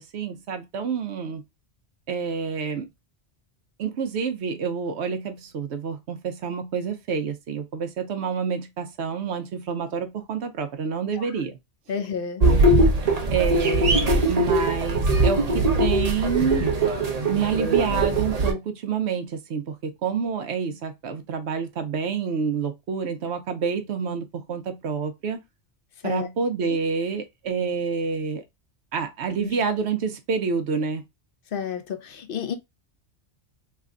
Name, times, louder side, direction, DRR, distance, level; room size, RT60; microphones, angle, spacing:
voice 1, 0.0-1.4 2.1-2.9 3.8-11.6 13.3-16.7 17.3-25.4 26.0-28.4 28.9-31.0, right 5 dB, 70° right, 0.9 m, -28 dB
voice 2, 11.9-12.4 26.0-26.3 26.7-26.8 29.4-29.6 31.5-32.6, left 7 dB, 60° left, 0.7 m, -31 dB
sound 1, 12.4-18.5, right 2 dB, 40° right, 0.7 m, -21 dB
3.3 x 2.2 x 3.7 m
omnidirectional pair, 1.2 m